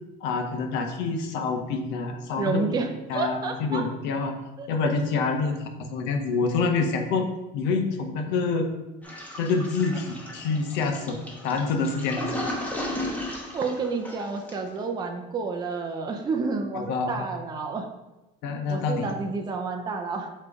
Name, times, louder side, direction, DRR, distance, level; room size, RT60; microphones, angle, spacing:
voice 1, 0.2-2.6 3.1-4.4 4.7-5.6 5.9-7.3 7.5-8.7 9.4-11.2 11.4-12.3 16.7-17.3 18.4-19.1, left 4 dB, 70° left, 4 dB, 1.0 m, -26 dB
voice 2, 2.4-3.8 4.6-4.7 13.5-17.9 18.7-20.3, right 4 dB, 20° right, 3 dB, 0.6 m, -30 dB
Toilet flush, 9.0-14.8, left 1 dB, 10° left, 1.2 m, -35 dB
7.2 x 3.2 x 4.8 m, 1.0 s
cardioid pair, 150°, 19 cm